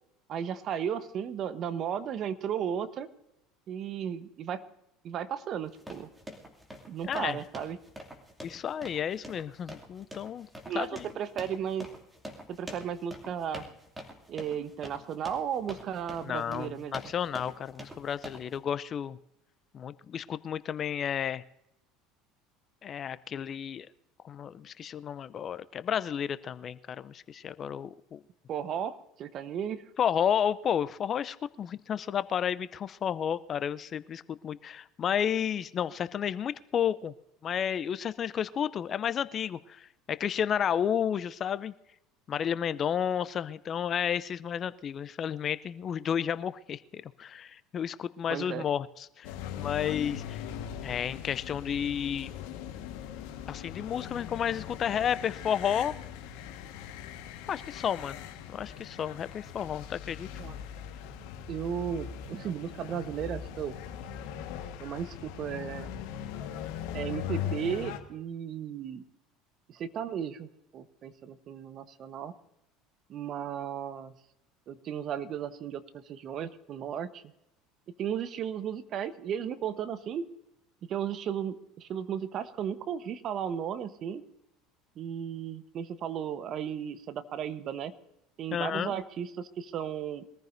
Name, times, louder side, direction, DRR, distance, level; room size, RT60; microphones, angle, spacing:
voice 1, 0.3-3.1 3.7-4.6 5.0-6.1 6.9-7.8 10.7-10.9 11.1-11.9 12.5-13.6 14.3-17.0 28.5-29.9 48.3-48.7 60.4-60.6 61.5-63.8 64.8-65.9 66.9-69.1 69.7-72.3 73.1-74.1 74.7-77.2 78.0-80.3 80.9-84.2 85.0-87.9 88.4-90.2, right 8 dB, 50° right, 12 dB, 1.1 m, -35 dB
sound 1, 5.6-18.6, equal, 10° right, 2.8 m, -46 dB
voice 2, 7.0-7.4 8.4-10.5 10.7-11.1 16.2-19.2 19.7-21.4 22.8-23.9 24.2-28.2 30.0-37.1 37.4-41.7 42.3-49.3 49.6-50.5 50.8-52.3 53.5-55.9 57.5-58.2 58.5-60.3 88.5-89.0, left 8 dB, 40° left, 16 dB, 0.6 m, -32 dB
sound 2, 49.2-68.0, left 9 dB, 70° left, 1.5 m, -40 dB
23.0 x 14.5 x 2.7 m, 0.85 s
hypercardioid pair, 80°, 0 cm